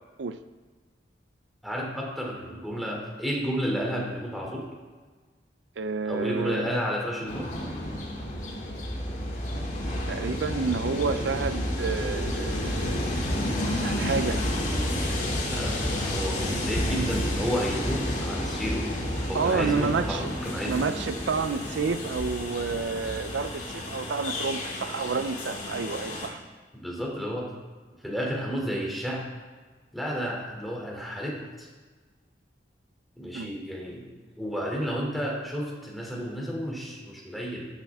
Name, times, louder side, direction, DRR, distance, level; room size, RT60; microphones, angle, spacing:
voice 1, 1.6-4.7 6.1-7.5 15.5-15.8 16.0-18.9 19.3-20.8 26.7-27.5 28.0-29.2 29.9-31.7 33.2-34.1 34.4-37.7, equal, ahead, -3 dB, 2.7 m, -31 dB
voice 2, 5.8-6.7 10.1-13.1 13.7-14.4 19.2-20.3 20.6-26.4 33.3-33.5, right 5 dB, 75° right, 11 dB, 0.5 m, -29 dB
Train, 7.3-26.3, left 1 dB, 45° left, 2.6 m, -30 dB
13.5 x 12.5 x 3.6 m, 1.4 s
head